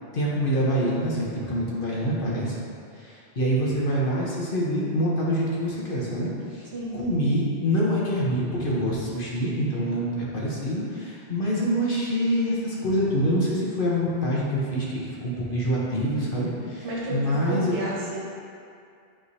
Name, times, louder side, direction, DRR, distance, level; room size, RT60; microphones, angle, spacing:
voice 1, 0.1-2.6 3.0-17.7, equal, 50° left, -6 dB, 1.2 m, -26 dB
voice 2, 16.8-18.2, right 1 dB, 70° right, -7 dB, 1.7 m, -32 dB
9.5 x 3.7 x 2.7 m, 2.4 s
omnidirectional pair, 1.2 m